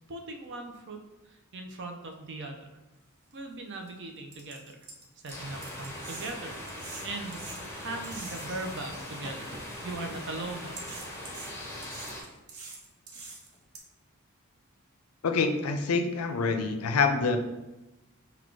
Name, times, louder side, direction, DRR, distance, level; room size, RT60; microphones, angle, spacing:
voice 1, 0.1-1.0 1.2-2.7 3.3-4.7 5.2-11.1, right 2 dB, 55° right, 4 dB, 0.6 m, -39 dB
sound 1, 3.3-3.4 3.9-4.0 4.3-8.7 9.2-10.2 10.8-13.8, right 3 dB, 80° right, 0.9 m, -45 dB
sound 2, 5.3-12.2, left 1 dB, 10° left, 0.7 m, -41 dB
voice 2, 15.2-17.4, left 4 dB, 80° left, 7 dB, 0.5 m, -26 dB
4.0 x 2.3 x 4.6 m, 1.0 s
head